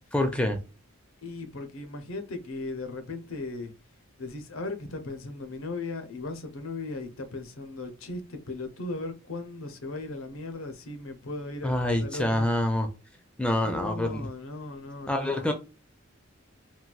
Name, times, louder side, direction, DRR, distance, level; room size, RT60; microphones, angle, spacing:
voice 1, 0.1-0.6 11.6-12.9 13.4-14.3 15.1-15.5, left 1 dB, 5° left, 0.4 m, -26 dB
voice 2, 1.2-3.7 4.2-12.5 13.6-15.5, left 2 dB, 80° left, 0.7 m, -37 dB
4.0 x 2.3 x 2.3 m
head